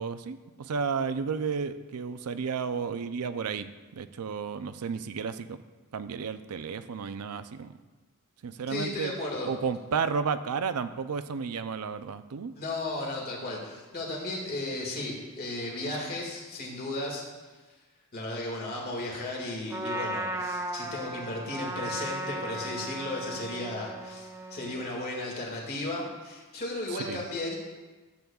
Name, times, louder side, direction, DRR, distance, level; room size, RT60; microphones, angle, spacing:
voice 1, 0.0-5.6 5.9-7.7 8.4-9.1 9.4-12.5 26.9-27.2, right 5 dB, 85° right, 11 dB, 0.5 m, -32 dB
voice 2, 8.7-9.5 12.5-17.3 18.1-27.6, left 2 dB, 45° left, -2 dB, 2.0 m, -35 dB
Trumpet, 19.7-24.9, right 1 dB, 15° right, 0.6 m, -36 dB
14.0 x 8.3 x 2.4 m, 1.3 s
head